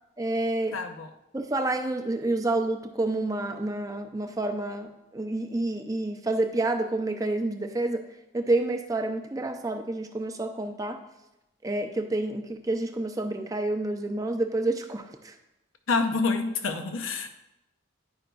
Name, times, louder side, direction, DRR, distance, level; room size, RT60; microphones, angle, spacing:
voice 1, 0.2-0.8 1.3-8.0 8.3-11.0 11.6-15.3, right 2 dB, 15° right, 5 dB, 0.4 m, -29 dB
voice 2, 0.7-1.1 15.9-17.3, left 4 dB, 80° left, 6 dB, 0.6 m, -27 dB
10.5 x 4.9 x 2.3 m, 0.90 s
head